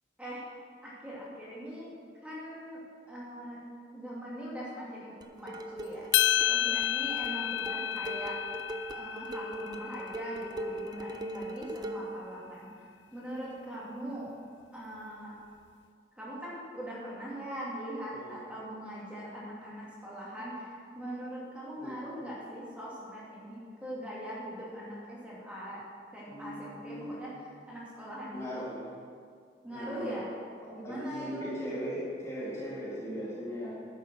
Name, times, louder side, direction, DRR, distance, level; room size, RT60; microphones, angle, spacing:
voice 1, 0.8-1.9 2.2-2.8 3.1-3.6 3.9-6.1 6.5-8.4 8.9-12.7 13.1-14.3 14.7-15.4 16.2-20.7 20.9-25.8 26.1-27.3 27.7-28.6 29.6-30.3 30.7-31.5, equal, 5° right, -7 dB, 2.7 m, -41 dB
sound 1, 5.2-12.2, right 1 dB, 20° right, 0.5 m, -41 dB
sound 2, 6.1-10.5, left 12 dB, 85° left, 0.4 m, -30 dB
voice 2, 26.3-27.3 28.3-28.8 29.7-30.2 30.8-33.7, equal, 15° left, -8 dB, 2.3 m, -38 dB
11.0 x 8.0 x 6.4 m, 2.2 s
head